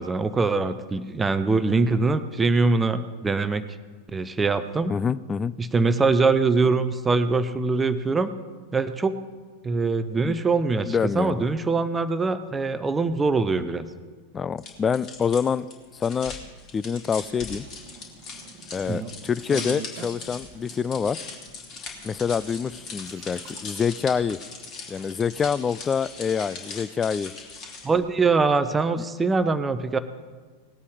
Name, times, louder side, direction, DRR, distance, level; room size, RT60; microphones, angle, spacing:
voice 1, 0.0-3.6 4.1-4.9 5.6-8.3 8.7-9.2 9.6-13.8 18.9-19.0 27.8-30.0, right 4 dB, 15° right, 11 dB, 0.6 m, -23 dB
voice 2, 4.9-5.5 10.2-10.4 10.9-11.5 14.3-15.7 15.9-16.3 16.7-17.6 18.7-21.2 22.0-24.4 24.9-27.3 29.0-29.1, left 6 dB, 20° left, 18 dB, 0.3 m, -26 dB
sound 1, 14.6-28.0, left 4 dB, 35° left, 2.9 m, -40 dB
sound 2, 17.2-25.1, right 7 dB, 40° right, 1.1 m, -45 dB
19.0 x 8.3 x 4.8 m, 1.5 s
figure-of-eight pair, 90°, 0 cm